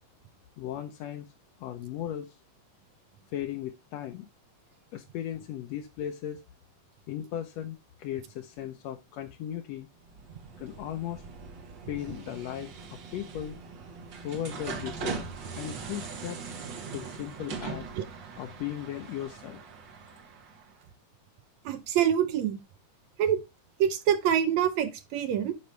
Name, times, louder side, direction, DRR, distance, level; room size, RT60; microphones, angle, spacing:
voice 1, 0.6-1.3 1.6-2.4 3.3-4.3 4.9-6.4 7.1-9.9 10.6-11.2 11.9-13.6 14.2-15.3 15.6-16.4 16.9-17.9 18.4-19.6, left 11 dB, 75° left, 1.6 m, -37 dB
sound 1, 10.0-20.8, right 5 dB, 60° right, 1.2 m, -41 dB
voice 2, 21.7-22.6 23.2-23.4 23.8-25.5, right 9 dB, 75° right, 1.8 m, -25 dB
10.0 x 5.3 x 3.2 m
omnidirectional pair, 3.5 m